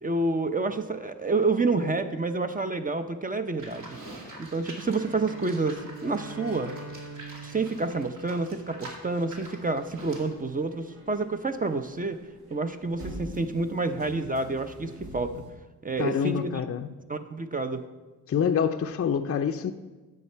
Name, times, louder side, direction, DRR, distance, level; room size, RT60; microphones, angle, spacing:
voice 1, 0.0-4.0 4.4-6.7 7.4-12.2 12.5-15.3 15.8-16.6 17.1-17.8, right 3 dB, 25° right, 8 dB, 0.6 m, -28 dB
Livestock farm animals working animals, 3.6-10.3, right 1 dB, 60° right, 2.3 m, -46 dB
Bowed string instrument, 4.9-9.1, right 3 dB, 40° right, 1.3 m, -44 dB
sound 1, 9.2-15.5, right 1 dB, 80° right, 1.9 m, -46 dB
voice 2, 16.0-16.9 18.3-19.7, left 7 dB, 40° left, 7 dB, 0.5 m, -26 dB
9.9 x 6.6 x 4.5 m, 1.2 s
cardioid pair, 70°, 36 cm